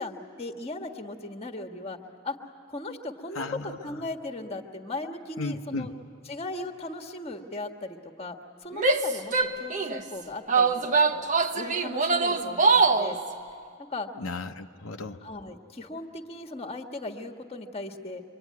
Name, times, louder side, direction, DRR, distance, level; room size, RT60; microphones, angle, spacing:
voice 1, 0.0-2.0 2.2-2.4 2.7-5.9 6.3-11.3 11.5-13.2 13.8-14.1 15.2-18.2, left 2 dB, 30° left, 5 dB, 1.5 m, -37 dB
voice 2, 3.3-4.0 5.4-5.9 14.2-15.2, left 2 dB, 90° left, 4 dB, 0.9 m, -35 dB
Female speech woman speaking / Yell, 8.7-10.0 10.5-13.1, right 4 dB, 40° right, 1.0 m, -23 dB
25.0 x 25.0 x 9.5 m, 2.4 s
head